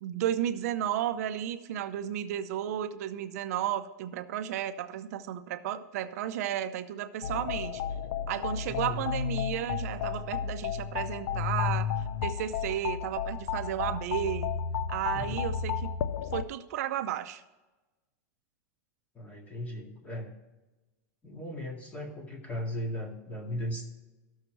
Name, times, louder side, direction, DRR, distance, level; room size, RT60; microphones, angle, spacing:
voice 1, 0.0-7.8 8.3-11.9 12.2-14.5 14.9-15.9 16.3-17.4, right 11 dB, 70° right, 10 dB, 0.7 m, -33 dB
sound 1, 7.2-16.4, left 7 dB, 80° left, 0.6 m, -33 dB
voice 2, 8.7-9.1 15.1-15.4 19.1-20.3 21.2-23.8, equal, 15° left, 1 dB, 2.1 m, -37 dB
14.0 x 6.5 x 4.6 m, 1.1 s
supercardioid pair, 155°, 9 cm